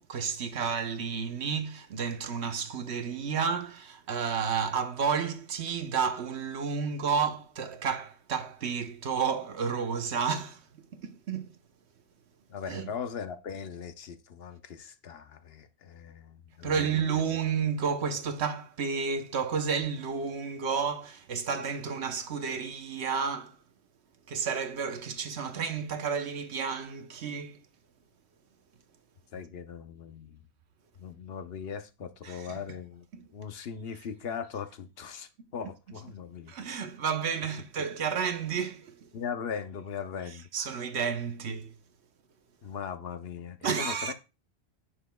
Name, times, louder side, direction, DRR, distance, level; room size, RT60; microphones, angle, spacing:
voice 1, 0.0-10.6 10.9-11.6 12.7-12.9 16.6-23.6 24.3-27.6 32.2-32.6 33.1-33.3 35.6-35.7 36.5-39.1 40.5-41.7 43.6-44.1, right 6 dB, 80° right, 1.1 m, -31 dB
voice 2, 12.5-16.9 29.3-30.4 31.0-33.0 33.3-36.8 39.1-40.8 42.6-44.1, left 7 dB, 65° left, 0.9 m, -39 dB
9.8 x 7.3 x 2.3 m
omnidirectional pair, 1.1 m